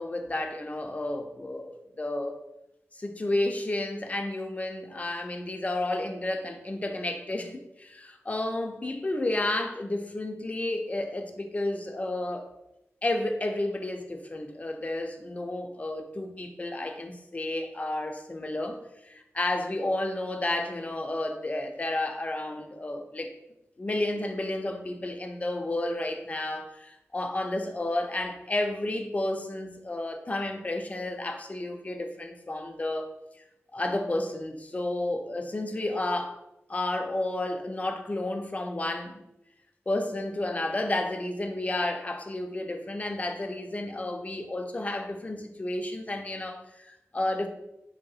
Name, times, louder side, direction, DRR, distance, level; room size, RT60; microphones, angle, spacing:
voice 1, 0.0-2.4 2.9-12.5 13.0-18.8 19.1-23.3 23.8-33.1 33.7-36.4 36.7-39.2 39.9-47.5, left 1 dB, 30° left, 5 dB, 0.3 m, -31 dB
3.2 x 2.7 x 2.3 m, 0.90 s
wide cardioid pair, 90°, 5 cm